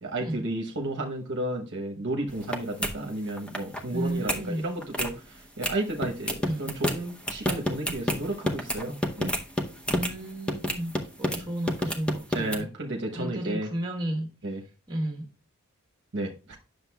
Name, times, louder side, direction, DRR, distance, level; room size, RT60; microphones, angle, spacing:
voice 1, 0.0-9.3 11.3-11.4 12.3-13.7 14.4-14.6 16.1-16.6, right 1 dB, 55° right, 1.0 m, -32 dB
sound 1, 2.3-2.5 2.8-2.9 3.3-3.8 4.1-4.4 4.8-5.1 5.6-5.7 6.0-10.1 10.5-11.4 11.7-12.6, left 1 dB, 5° left, 0.8 m, -29 dB
voice 2, 3.9-4.7 6.4-6.7 9.9-12.7 13.1-14.3 14.9-15.2, right 1 dB, 20° right, 1.5 m, -32 dB
9.8 x 6.6 x 2.3 m
head